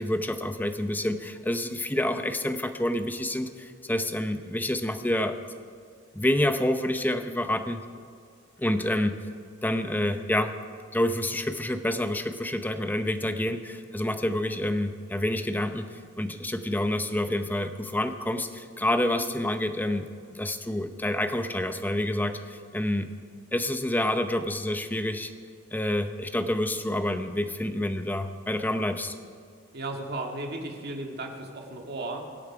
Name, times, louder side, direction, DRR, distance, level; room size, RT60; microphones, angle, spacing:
voice 1, 0.0-5.4 6.1-7.8 8.6-9.2 9.6-10.5 10.9-20.1 20.3-23.1 23.5-25.3 25.7-29.1, left 1 dB, 10° left, 8 dB, 0.7 m, -28 dB
voice 2, 29.7-32.3, right 2 dB, 55° right, 2 dB, 2.0 m, -35 dB
24.0 x 8.6 x 4.9 m, 2.2 s
head